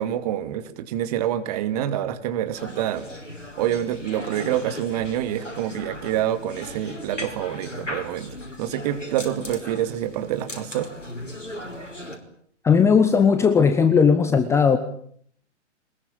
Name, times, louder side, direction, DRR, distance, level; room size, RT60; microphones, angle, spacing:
voice 1, 0.0-3.1 3.6-10.9, right 11 dB, 35° right, 10 dB, 2.5 m, -27 dB
sound 1, 2.5-12.2, left 1 dB, 85° left, 5.1 m, -37 dB
voice 2, 12.6-14.8, left 6 dB, 5° left, 9 dB, 1.0 m, -17 dB
23.0 x 21.5 x 9.0 m, 0.63 s
figure-of-eight pair, 120°, 36 cm